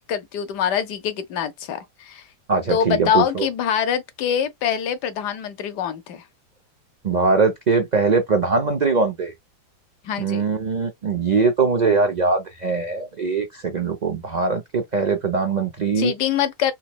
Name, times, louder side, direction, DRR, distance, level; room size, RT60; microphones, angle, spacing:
voice 1, 0.0-2.2 2.7-6.2 10.0-10.4 16.0-16.7, left 8 dB, 90° left, 1.4 m, -24 dB
voice 2, 2.5-3.5 7.0-9.3 10.2-16.1, right 4 dB, 70° right, 0.4 m, -21 dB
3.9 x 3.0 x 2.2 m
omnidirectional pair, 1.7 m